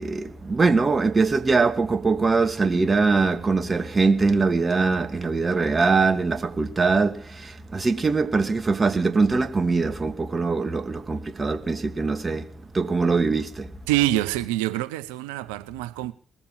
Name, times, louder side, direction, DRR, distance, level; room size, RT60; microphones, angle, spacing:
voice 1, 0.0-13.7, right 4 dB, 35° right, 1.4 m, -22 dB
voice 2, 13.9-16.1, right 15 dB, 80° right, 0.6 m, -25 dB
21.0 x 7.1 x 5.6 m
hypercardioid pair, 45°, 0 cm